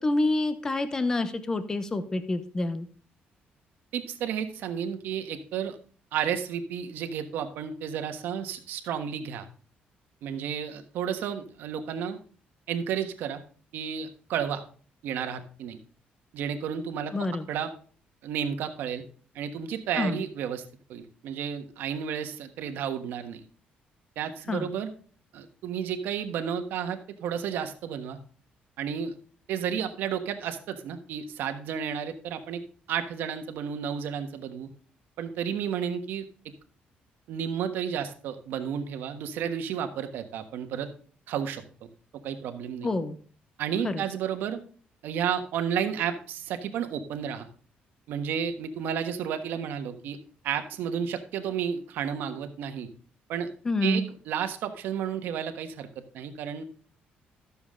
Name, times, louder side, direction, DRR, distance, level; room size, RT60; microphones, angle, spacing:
voice 1, 0.0-2.9 17.1-17.5 20.0-20.2 24.5-24.7 42.8-43.2 43.8-44.0 53.6-54.0, left 2 dB, 20° left, 11 dB, 0.7 m, -27 dB
voice 2, 3.9-5.8 6.1-9.5 10.2-12.2 12.7-13.4 13.7-14.6 15.0-15.8 16.3-17.1 17.5-17.7 18.2-19.0 19.3-23.4 24.2-24.9 25.3-28.2 28.8-29.1 29.5-32.6 32.9-34.7 35.2-36.2 37.3-40.9 41.3-41.9 42.2-42.9 43.6-44.6 45.0-47.5 48.1-50.2 50.4-52.9 53.3-53.5 53.8-56.6, right 8 dB, 85° right, 7 dB, 1.2 m, -32 dB
12.5 x 7.0 x 3.7 m, 0.43 s
cardioid pair, 170°, 3 cm